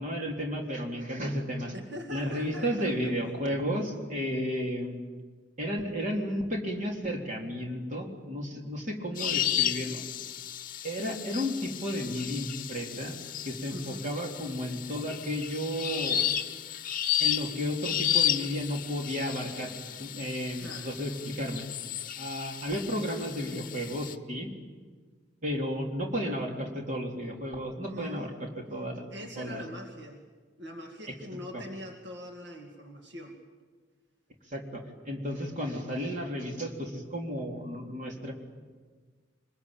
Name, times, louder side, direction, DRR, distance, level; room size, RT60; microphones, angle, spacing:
voice 1, 0.0-1.7 2.1-5.0 5.6-10.0 10.8-13.2 13.5-16.2 17.2-19.7 20.0-21.7 22.2-24.5 25.4-29.6 31.1-31.2 31.5-31.6 34.5-38.3, equal, 45° right, 1 dB, 3.6 m, -33 dB
voice 2, 1.7-2.9 13.7-14.0 20.6-20.9 27.9-28.4 29.1-30.2 30.6-33.4, equal, 65° right, 1 dB, 2.3 m, -42 dB
sound 1, 9.2-24.1, left 11 dB, 45° left, 0.9 m, -33 dB
25.0 x 21.0 x 9.0 m, 1.5 s
head